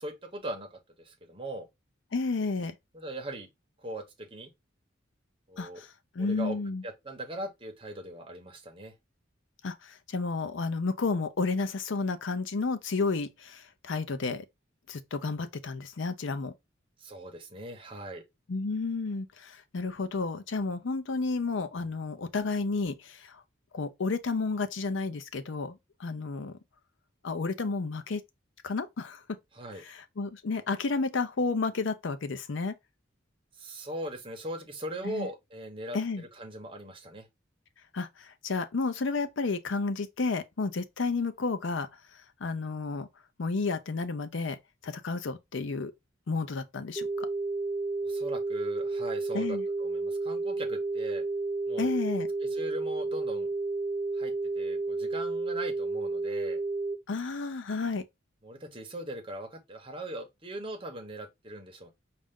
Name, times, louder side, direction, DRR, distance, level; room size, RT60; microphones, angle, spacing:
voice 1, 0.0-1.7 2.9-3.5 3.8-4.5 5.5-5.8 6.2-6.6 6.8-8.9 17.0-18.2 29.5-29.8 33.6-37.3 48.0-51.2 51.7-51.9 52.5-53.5 54.1-56.6 58.4-61.9, right 1 dB, 30° right, 0.9 m, -40 dB
voice 2, 2.1-2.7 5.6-6.8 9.6-14.5 14.9-16.5 18.5-23.4 23.7-26.6 27.2-28.2 28.6-29.4 29.8-32.7 35.0-35.3 35.9-36.2 37.9-43.1 43.4-44.6 44.8-45.9 46.3-47.3 49.3-49.7 51.8-52.3 57.1-58.0, left 3 dB, 70° left, 0.5 m, -31 dB
sound 1, 47.0-57.0, right 3 dB, ahead, 0.4 m, -31 dB
5.4 x 2.5 x 3.5 m
head